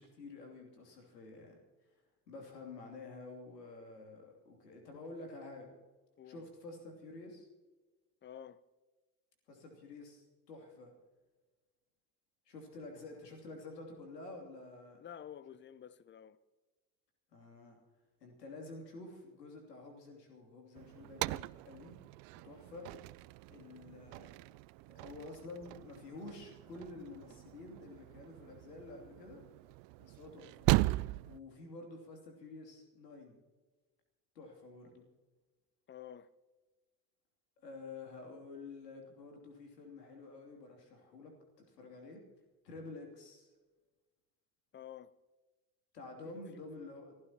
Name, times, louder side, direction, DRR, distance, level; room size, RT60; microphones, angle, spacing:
voice 1, 0.0-1.6 2.3-5.7 6.2-7.5 9.5-10.9 12.5-15.0 17.3-17.8 18.2-22.0 22.4-22.9 23.5-24.5 24.9-29.4 30.0-30.7 31.3-33.4 34.3-35.0 37.6-42.2 42.6-43.5 45.9-47.2, left 3 dB, 80° left, 3.0 m, -50 dB
voice 2, 8.2-8.6 15.0-16.4 35.9-36.3 44.7-45.1 46.5-46.6, left 10 dB, 25° left, 0.7 m, -50 dB
sound 1, 20.7-31.4, right 21 dB, 50° right, 0.4 m, -38 dB
28.0 x 15.0 x 3.0 m
figure-of-eight pair, 60°, 48 cm